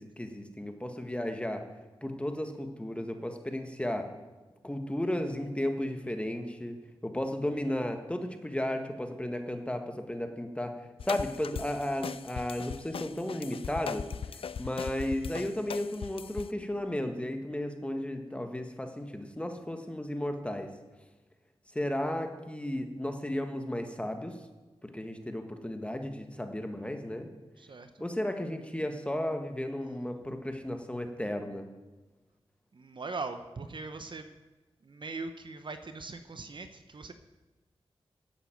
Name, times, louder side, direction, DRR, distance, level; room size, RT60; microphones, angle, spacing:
voice 1, 0.0-1.6 2.0-4.1 4.6-14.1 14.6-20.7 21.7-24.4 24.8-27.3 28.0-31.7, left 1 dB, 10° left, 6 dB, 1.6 m, -34 dB
sound 1, 11.0-16.5, left 6 dB, 65° left, 0.5 m, -39 dB
voice 2, 32.7-34.3 34.9-37.1, right 3 dB, 50° right, 9 dB, 0.9 m, -40 dB
12.0 x 8.3 x 7.8 m, 1.2 s
wide cardioid pair, 75°, 10 cm